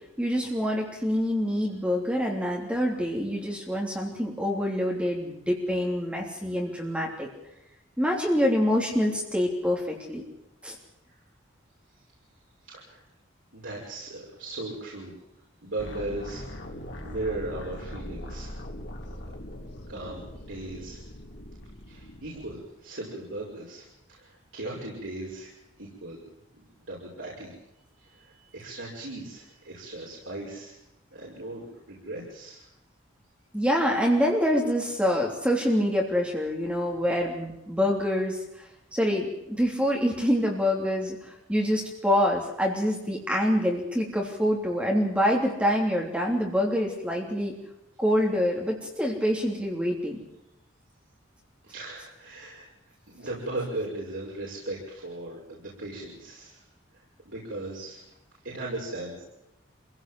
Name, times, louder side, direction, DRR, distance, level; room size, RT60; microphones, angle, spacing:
voice 1, 0.2-7.3 8.0-10.2 10.6-10.7 33.5-38.7 38.9-47.5 48.0-50.2, equal, 5° right, -1 dB, 3.2 m, -26 dB
voice 2, 12.7-13.0 13.5-15.1 15.6-18.5 19.9-21.0 21.9-25.5 25.8-26.2 26.9-27.5 28.0-30.7 31.1-32.7 51.6-52.7 53.1-56.6 56.9-58.0 58.4-59.2, right 2 dB, 75° right, -5 dB, 6.0 m, -37 dB
sound 1, 15.8-22.6, left 1 dB, 60° left, 3.0 m, -41 dB
26.0 x 17.0 x 7.8 m, 0.89 s
head